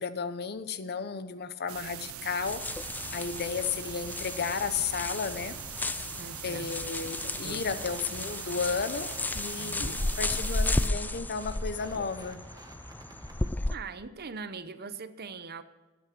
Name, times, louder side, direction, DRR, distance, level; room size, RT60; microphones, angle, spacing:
voice 1, 0.0-2.6 3.1-5.6 6.4-12.4, left 5 dB, 50° left, 12 dB, 0.8 m, -33 dB
sound 1, 1.7-10.9, right 11 dB, 85° right, 0.6 m, -42 dB
sound 2, 2.4-13.7, left 2 dB, 10° left, 0.3 m, -34 dB
voice 2, 6.2-8.0 9.6-10.1 13.7-15.6, right 4 dB, 50° right, 12 dB, 0.8 m, -43 dB
sound 3, 7.7-13.5, right 2 dB, 20° right, 1.1 m, -52 dB
13.0 x 10.5 x 6.1 m, 1.2 s
head